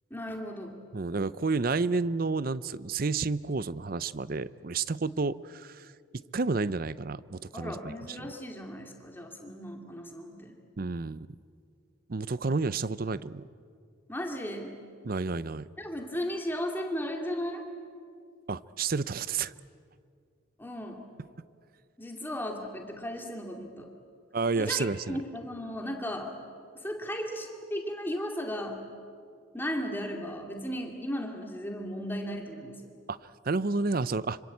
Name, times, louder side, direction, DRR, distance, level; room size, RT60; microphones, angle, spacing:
voice 1, 0.1-0.8 7.5-10.6 14.1-14.7 15.8-17.6 20.6-21.0 22.0-23.9 24.5-26.3 26.8-28.8 29.5-32.9, equal, 10° left, 2 dB, 2.4 m, -36 dB
voice 2, 0.9-5.9 6.3-7.9 10.8-11.3 12.1-13.5 15.0-15.7 18.5-19.5 24.3-25.2 33.1-34.4, right 4 dB, 45° right, 17 dB, 0.6 m, -30 dB
26.0 x 25.0 x 8.4 m, 2.3 s
head